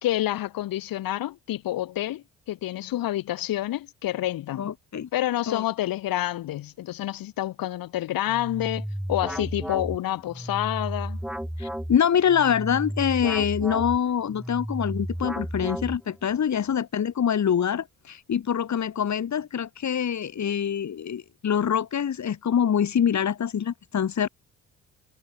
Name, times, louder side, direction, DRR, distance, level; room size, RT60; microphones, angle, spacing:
voice 1, 0.0-4.7 5.1-11.2, left 14 dB, 75° left, 3.2 m, -28 dB
voice 2, 4.6-5.1 5.5-5.6 11.6-24.3, left 8 dB, 55° left, 2.6 m, -25 dB
sound 1, 8.3-16.3, equal, 5° right, 2.2 m, -33 dB
supercardioid pair, 55°, 35 cm